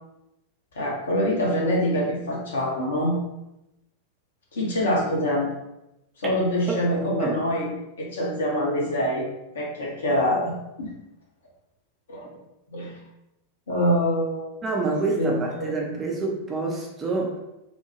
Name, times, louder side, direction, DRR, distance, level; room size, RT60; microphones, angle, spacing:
voice 1, 0.7-3.2 4.5-5.5 6.2-7.7 8.0-9.3 9.5-10.9 12.1-12.4 12.7-13.0 13.7-14.5 15.2-16.0, equal, 65° left, -3 dB, 0.9 m, -25 dB
voice 2, 14.6-17.4, right 3 dB, 20° right, -1 dB, 0.6 m, -27 dB
2.9 x 2.2 x 2.8 m, 0.90 s
figure-of-eight pair, 90°, 0 cm